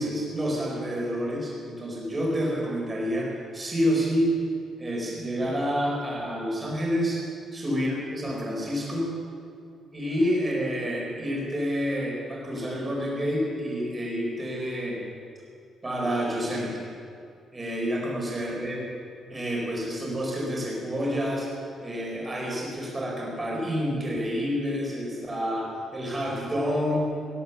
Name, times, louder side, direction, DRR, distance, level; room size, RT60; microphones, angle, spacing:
voice 1, 0.0-4.3 4.8-7.2 7.5-9.1 9.9-15.0 15.8-16.9 17.5-18.9 19.3-21.5 21.8-27.1, equal, 15° right, -3 dB, 4.2 m, -28 dB
18.5 x 11.0 x 6.8 m, 2.4 s
cardioid pair, 175°, 0 cm